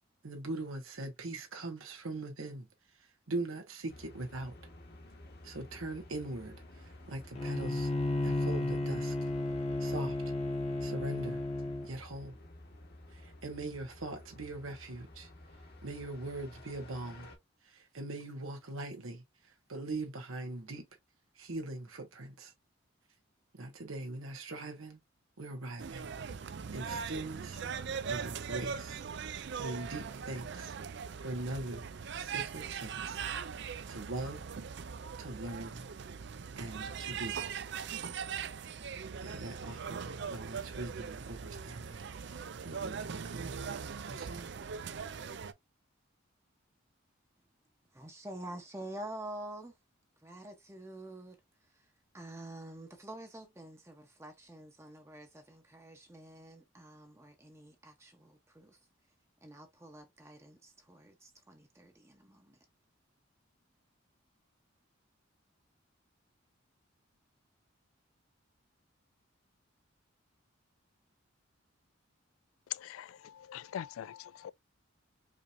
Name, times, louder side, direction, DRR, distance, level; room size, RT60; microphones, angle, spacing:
voice 1, 0.2-2.7 3.0-4.5 5.4-7.9 8.2-9.3 9.8-10.2 10.8-11.4 11.8-12.4 13.1-15.3 15.8-17.3 17.6-20.8 21.3-22.5 23.5-25.0 25.4-26.1 26.7-27.6 28.1-29.0 29.6-30.7 31.2-31.9 32.2-33.2 33.8-34.4 35.2-35.8 36.6-37.4 39.0-44.5, right 2 dB, 85° right, 1.2 m, -41 dB
sound 1, 3.9-17.4, left 1 dB, 50° left, 1.2 m, -53 dB
Bowed string instrument, 7.4-11.9, left 2 dB, 30° left, 0.9 m, -33 dB
sound 2, 25.8-45.5, right 6 dB, 55° right, 0.4 m, -40 dB
voice 2, 47.9-49.7 50.2-51.4 52.1-58.8 59.4-62.6, right 1 dB, 15° right, 0.7 m, -47 dB
voice 3, 72.7-74.5, left 11 dB, 85° left, 0.3 m, -42 dB
5.0 x 2.8 x 2.5 m
head